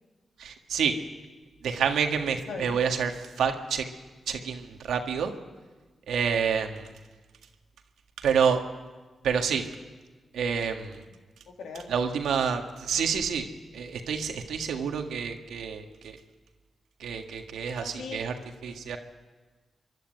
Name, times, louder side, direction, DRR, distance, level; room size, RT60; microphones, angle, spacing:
voice 1, 0.4-0.9 1.6-3.9 4.3-5.3 6.1-6.9 8.2-8.6 9.2-9.6 10.3-11.0 11.9-13.4 13.7-16.2 17.0-18.3 18.6-19.0, right 6 dB, 90° right, 5 dB, 1.7 m, -28 dB
voice 2, 2.5-2.8 11.5-11.9 17.8-18.2, left 4 dB, 90° left, 2 dB, 2.5 m, -39 dB
26.0 x 11.5 x 9.2 m, 1.3 s
cardioid pair, 55°, 0 cm